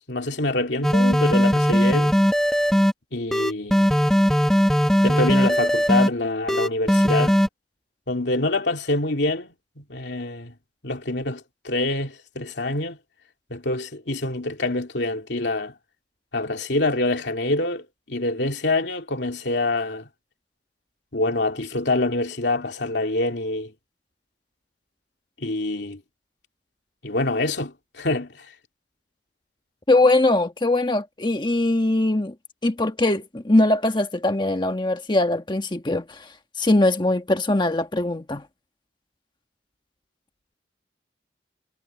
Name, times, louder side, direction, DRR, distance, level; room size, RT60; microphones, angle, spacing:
voice 1, 0.1-2.2 3.1-3.9 5.0-7.4 8.1-10.5 10.8-13.0 13.5-15.7 16.3-20.1 21.1-23.7 25.4-26.0 27.0-28.3, left 2 dB, 70° left, 2.8 m, -26 dB
sound 1, 0.8-2.9 3.3-6.1 6.5-7.5, equal, 5° left, 0.9 m, -19 dB
voice 2, 29.9-32.3 32.6-38.4, left 2 dB, 25° left, 1.4 m, -21 dB
head